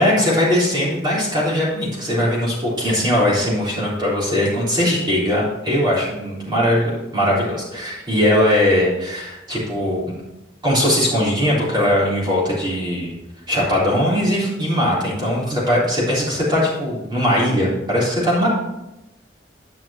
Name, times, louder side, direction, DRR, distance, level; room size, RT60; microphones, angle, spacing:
voice 1, 0.0-10.0 10.6-13.1 13.5-18.5, left 1 dB, 25° right, -6 dB, 3.7 m, -20 dB
11.0 x 6.0 x 4.3 m, 0.95 s
head